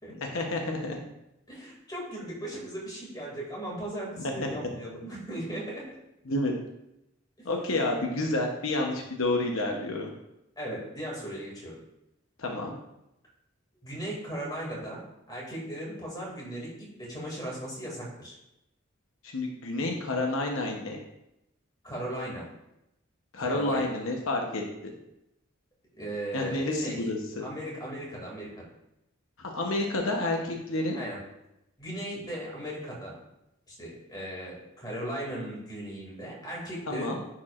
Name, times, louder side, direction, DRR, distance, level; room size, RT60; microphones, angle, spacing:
voice 1, 0.3-1.0 4.4-4.7 6.3-6.5 7.4-10.1 12.4-12.8 19.2-21.0 23.3-24.9 26.3-27.4 29.4-31.0 36.9-37.2, left 2 dB, 85° left, 1 dB, 0.9 m, -29 dB
voice 2, 1.5-5.9 7.4-7.5 10.6-11.8 13.8-15.0 15.3-18.4 21.8-22.4 23.4-23.8 26.0-27.1 27.4-28.6 30.9-31.2 31.8-33.1 33.7-37.2, right 1 dB, 20° left, -3 dB, 2.4 m, -37 dB
9.8 x 4.7 x 2.5 m, 0.86 s
head